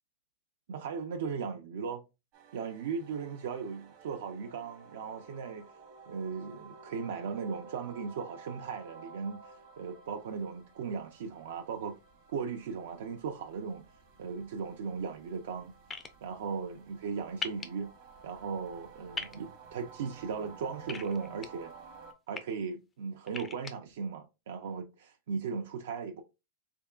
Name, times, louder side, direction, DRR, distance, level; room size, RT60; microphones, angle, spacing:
voice 1, 0.7-2.0 2.5-5.7 6.1-12.0 12.3-13.9 14.2-15.7 16.2-17.9 18.2-21.7 22.3-26.2, right 5 dB, 65° right, 0.4 m, -37 dB
sound 1, 2.3-22.1, right 5 dB, 35° right, 0.8 m, -53 dB
sound 2, 15.9-16.1 17.4-17.7 19.1-19.4 20.9-21.5 22.1-22.4 23.3-23.7, left 4 dB, 10° left, 0.3 m, -38 dB
3.6 x 3.5 x 2.3 m
supercardioid pair, 175°, 0 cm